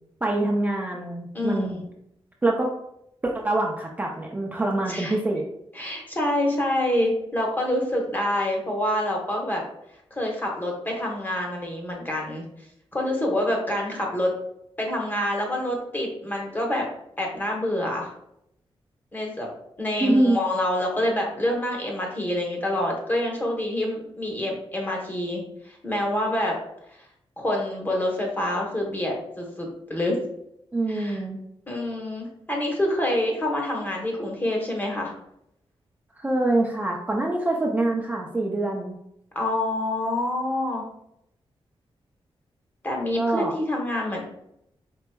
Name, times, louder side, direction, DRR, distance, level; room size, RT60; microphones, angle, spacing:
voice 1, 0.2-1.8 2.4-2.7 3.2-5.4 20.0-20.4 30.7-31.4 36.2-39.0 43.1-43.5, right 2 dB, 15° right, -1 dB, 0.4 m, -25 dB
voice 2, 1.3-1.7 4.9-5.2 5.7-9.6 10.1-12.4 12.9-14.3 14.8-16.8 17.2-18.1 19.1-19.5 19.8-26.5 27.4-30.2 30.9-31.2 31.7-35.1 39.3-40.8 42.8-44.2, left 1 dB, 20° left, 0 dB, 1.0 m, -27 dB
4.5 x 3.9 x 2.3 m, 0.76 s
wide cardioid pair, 145°, 10 cm